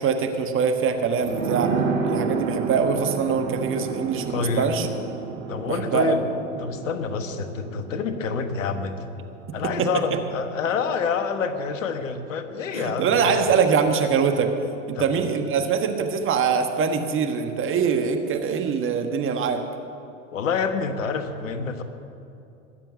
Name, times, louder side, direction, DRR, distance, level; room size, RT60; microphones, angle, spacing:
voice 1, 0.0-1.7 2.0-4.9 5.7-6.2 9.6-10.2 12.7-14.5 14.9-19.6, right 6 dB, 30° right, 6 dB, 1.4 m, -23 dB
sound 1, 1.2-10.5 10.8-10.9, right 5 dB, 85° right, 1.3 m, -31 dB
voice 2, 4.3-4.7 5.5-6.2 6.6-9.0 9.5-13.4 14.9-15.2 20.3-21.8, left 5 dB, 80° left, 8 dB, 1.3 m, -27 dB
20.5 x 7.4 x 6.5 m, 2.7 s
hypercardioid pair, 95°, 39 cm